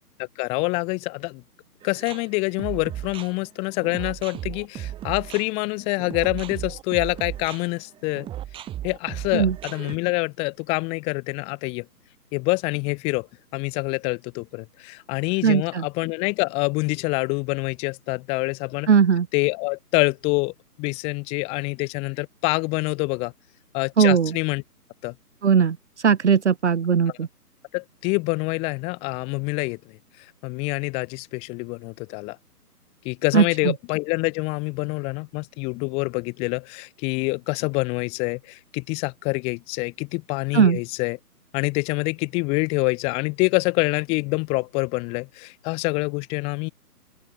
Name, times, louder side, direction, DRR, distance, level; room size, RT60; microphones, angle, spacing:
voice 1, 0.2-1.4 1.8-8.3 8.8-11.9 12.3-13.3 13.5-18.9 19.3-23.3 23.7-24.6 25.0-25.1 27.7-30.0 30.4-32.4 33.0-41.2 41.5-46.7, left 29 dB, 10° left, 1.8 m, -26 dB
sound 1, 1.8-10.0, right 12 dB, 10° right, 5.4 m, -35 dB
voice 2, 15.4-15.8 18.9-19.3 24.0-24.3 25.4-27.3 33.3-33.4 40.5-40.8, right 6 dB, 45° right, 2.3 m, -18 dB
open air
figure-of-eight pair, 145°, 47 cm